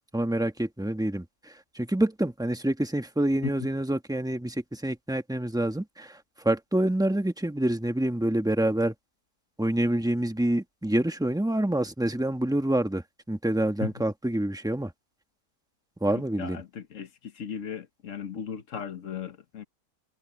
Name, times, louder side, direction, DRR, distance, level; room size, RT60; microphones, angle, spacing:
voice 1, 0.1-8.9 9.6-14.9 16.0-16.6, right 1 dB, 5° right, 1.0 m, -27 dB
voice 2, 16.4-19.6, left 7 dB, 50° left, 1.4 m, -36 dB
omnidirectional pair, 1.8 m